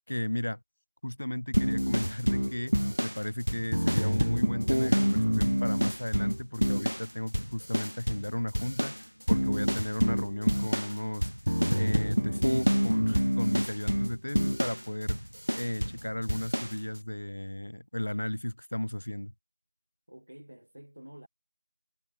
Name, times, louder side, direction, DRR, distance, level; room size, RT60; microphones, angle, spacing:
voice 1, 0.1-0.6 1.0-2.7 3.0-9.0 9.3-11.3 11.7-15.2 15.5-19.3, left 1 dB, 50° left, 0.6 m, -34 dB
sound 1, 1.5-7.1 7.3-8.3 8.5-16.0 16.3-16.7, equal, 90° right, 0.3 m, -27 dB
voice 2, 20.1-21.3, equal, 65° right, 7.8 m, -49 dB
figure-of-eight pair, 175°, 0 cm